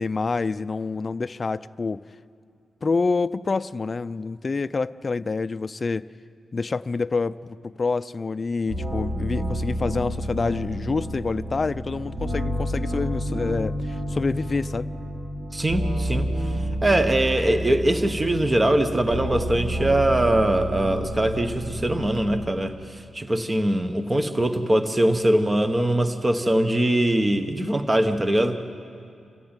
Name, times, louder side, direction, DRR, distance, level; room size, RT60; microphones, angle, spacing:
voice 1, 0.0-2.0 2.8-6.1 6.5-14.9, left 4 dB, 40° left, 13 dB, 0.5 m, -27 dB
sound 1, 8.7-22.5, equal, 50° right, 3.8 m, -30 dB
voice 2, 15.5-16.3 16.8-28.6, right 1 dB, 20° right, 8 dB, 1.2 m, -22 dB
27.5 x 14.5 x 9.0 m, 2.4 s
cardioid pair, 95°, 0 cm